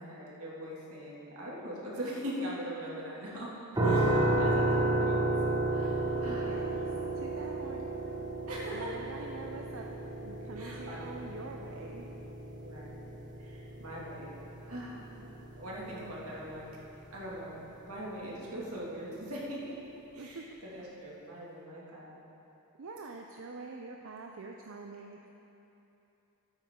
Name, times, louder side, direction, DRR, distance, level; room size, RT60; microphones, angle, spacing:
voice 1, 0.0-3.5 3.8-4.7 5.0-5.3 5.7-7.0 8.5-9.1 10.6-11.3 12.6-15.3 15.6-16.7 17.1-19.7 20.1-22.2, equal, 85° right, -6 dB, 2.3 m, -42 dB
sound 1, 3.8-16.6, right 2 dB, 20° right, 1.4 m, -32 dB
voice 2, 4.3-4.6 6.0-6.9 7.2-7.9 8.7-12.1 20.2-20.4 22.8-25.3, right 3 dB, 65° right, 2 dB, 0.5 m, -45 dB
13.5 x 8.8 x 3.8 m, 2.9 s
head